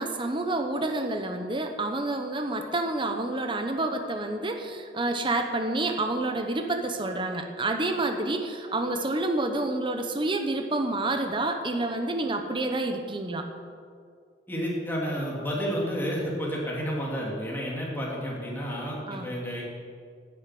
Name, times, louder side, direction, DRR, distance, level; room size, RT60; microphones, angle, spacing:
voice 1, 0.0-13.4 19.1-19.3, right 2 dB, 30° right, 5 dB, 1.1 m, -28 dB
voice 2, 14.5-19.6, equal, 10° left, -4 dB, 3.4 m, -31 dB
11.0 x 9.7 x 9.4 m, 2.1 s
head